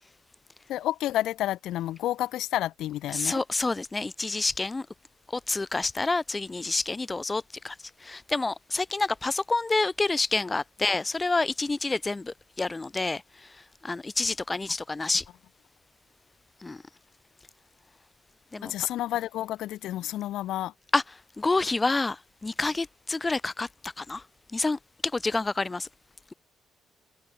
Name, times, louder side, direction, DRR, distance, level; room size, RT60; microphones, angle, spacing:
voice 1, 0.7-3.4 18.6-20.7, left 13 dB, 85° left, 3.6 m, -30 dB
voice 2, 3.1-4.9 5.3-7.7 8.0-13.2 13.8-15.2 16.6-16.8 18.5-18.7 20.9-21.0 21.4-24.2 24.5-24.8 25.1-25.9, left 3 dB, 20° left, 4.8 m, -28 dB
cardioid pair, 90°, 0 cm